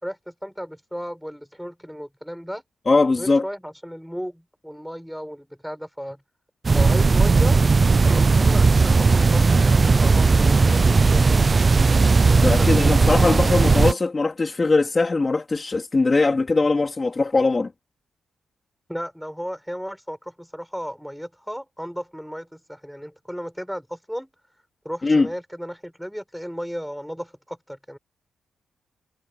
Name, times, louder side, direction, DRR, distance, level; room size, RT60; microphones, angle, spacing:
voice 1, 0.0-2.6 3.2-6.2 6.7-7.6 8.0-11.6 12.3-12.9 18.9-24.3 24.8-28.0, equal, ahead, 5.0 m, -34 dB
voice 2, 2.9-3.4 12.4-17.7 25.0-25.3, left 3 dB, 25° left, 2.6 m, -20 dB
sound 1, 6.6-13.9, right 4 dB, 30° right, 0.4 m, -17 dB
wide cardioid pair, 140°, 0 cm